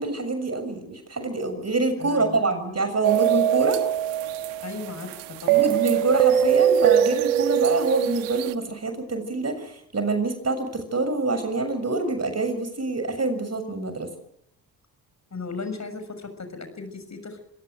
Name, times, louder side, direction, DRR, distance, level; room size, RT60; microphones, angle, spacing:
voice 1, 0.0-3.8 5.5-14.1, right 3 dB, 35° right, 9 dB, 6.7 m, -26 dB
voice 2, 2.0-2.4 4.6-5.8 15.3-17.4, left 4 dB, 35° left, 9 dB, 6.6 m, -36 dB
sound 1, 3.0-8.5, right 11 dB, 85° right, 1.3 m, -22 dB
26.0 x 18.0 x 7.9 m, 0.77 s
hypercardioid pair, 50°, 45 cm